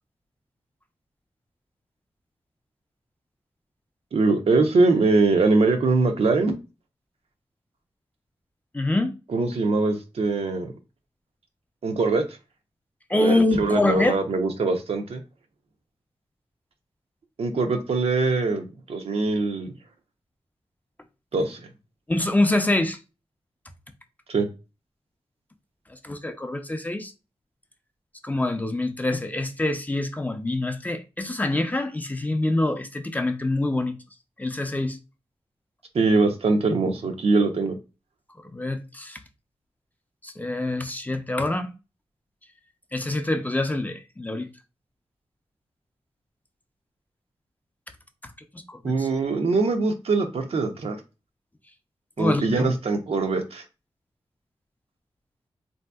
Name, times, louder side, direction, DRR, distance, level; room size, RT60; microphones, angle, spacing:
voice 1, 4.1-6.6 9.3-10.7 11.8-12.2 13.2-15.2 17.4-19.7 21.3-21.6 24.3-24.5 35.9-37.7 48.8-51.0 52.2-53.6, right 3 dB, 80° right, 0.6 m, -22 dB
voice 2, 8.7-9.2 13.1-14.2 22.1-23.0 25.9-27.1 28.2-34.0 34.4-35.0 38.4-39.2 40.2-41.7 42.9-44.5 48.5-49.1 52.2-52.7, left 2 dB, 15° left, 0.4 m, -25 dB
3.3 x 2.7 x 2.2 m
wide cardioid pair, 95°, 10 cm